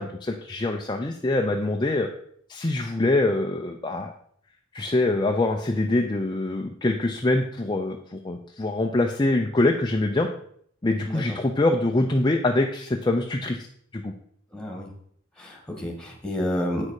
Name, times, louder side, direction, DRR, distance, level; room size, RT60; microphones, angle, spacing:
voice 1, 0.0-2.1 2.5-4.1 4.7-10.3 10.8-13.6 13.9-14.1, left 2 dB, 20° left, 2 dB, 0.6 m, -24 dB
voice 2, 11.1-11.4 14.5-14.9 15.4-16.9, left 1 dB, 5° left, 0 dB, 1.9 m, -30 dB
8.5 x 6.5 x 4.8 m, 0.65 s
head